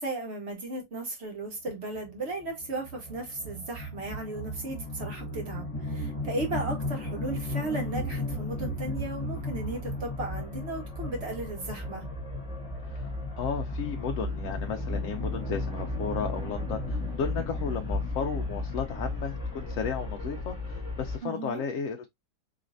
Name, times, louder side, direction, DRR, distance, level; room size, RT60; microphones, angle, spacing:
voice 1, 0.0-12.1 21.2-21.7, right 2 dB, 45° right, 1.7 m, -35 dB
sound 1, 1.9-21.2, left 1 dB, 25° left, 1.3 m, -34 dB
voice 2, 12.8-22.1, left 6 dB, 70° left, 0.9 m, -34 dB
4.8 x 3.1 x 2.5 m
omnidirectional pair, 1.6 m